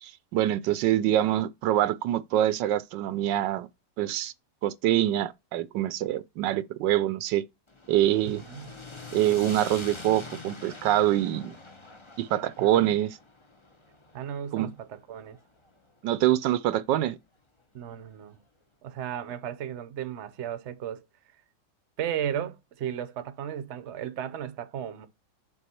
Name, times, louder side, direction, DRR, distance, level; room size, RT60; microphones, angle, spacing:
voice 1, 0.0-3.7 4.0-4.3 4.6-7.4 7.9-8.4 9.1-11.5 12.2-13.2 14.5-14.7 16.0-17.2, right 13 dB, 80° right, 1.3 m, -25 dB
sound 1, 7.7-15.9, left 3 dB, 20° left, 0.8 m, -45 dB
voice 2, 8.3-8.7 12.6-13.0 14.1-15.4 17.7-18.4 18.8-21.0 22.0-25.1, right 9 dB, 50° right, 0.9 m, -35 dB
6.8 x 4.5 x 4.4 m
omnidirectional pair, 1.9 m